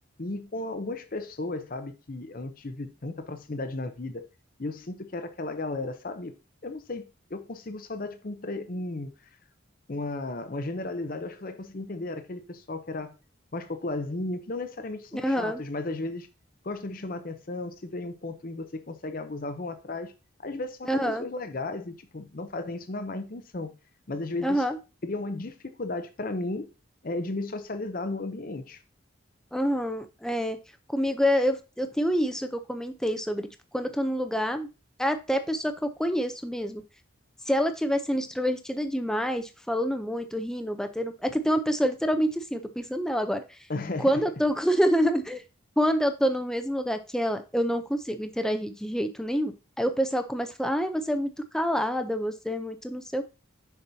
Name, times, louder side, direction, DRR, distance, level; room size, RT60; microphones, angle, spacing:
voice 1, 0.2-4.3 4.6-6.3 6.6-9.1 9.9-13.1 13.5-16.3 16.6-20.1 20.4-23.8 24.1-24.6 25.0-26.7 27.0-28.8 43.7-44.2, left 2 dB, 45° left, 0.6 m, -34 dB
voice 2, 15.1-15.6 20.9-21.3 24.4-24.8 29.5-30.6 30.9-33.5 33.7-34.7 35.0-36.8 37.5-43.4 44.0-45.4 45.8-53.2, equal, 5° left, 0.5 m, -27 dB
6.7 x 5.9 x 2.7 m
head